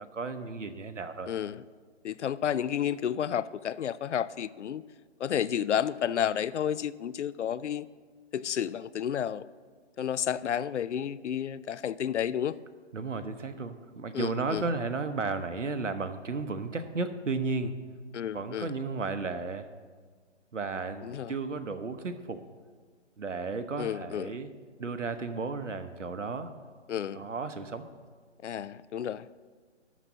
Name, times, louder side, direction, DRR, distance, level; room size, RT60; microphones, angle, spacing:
voice 1, 0.0-1.3 12.9-17.8 18.3-19.7 20.5-22.4 23.2-24.5 24.8-26.5 27.1-27.8, right 4 dB, 90° right, 0.9 m, -34 dB
voice 2, 1.3-1.6 2.0-4.8 5.2-7.9 8.3-9.4 10.0-12.5 14.1-14.6 18.1-18.7 21.0-21.3 23.8-24.3 26.9-27.3 28.4-29.3, left 9 dB, 75° left, 0.5 m, -31 dB
12.5 x 4.2 x 7.3 m
figure-of-eight pair, 150°, 36 cm